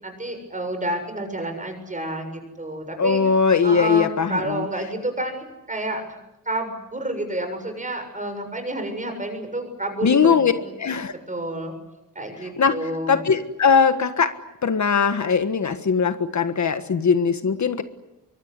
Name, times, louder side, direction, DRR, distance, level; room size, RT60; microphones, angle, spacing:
voice 1, 0.0-3.2 3.6-6.2 6.5-11.0 11.3-11.7 12.2-13.2, right 1 dB, 25° right, 6 dB, 7.1 m, -30 dB
voice 2, 3.0-4.6 10.0-10.5 10.8-11.1 12.6-12.7 13.1-14.3 14.6-17.8, left 6 dB, 60° left, 9 dB, 1.5 m, -20 dB
24.5 x 24.0 x 9.8 m, 0.92 s
wide cardioid pair, 140°, 32 cm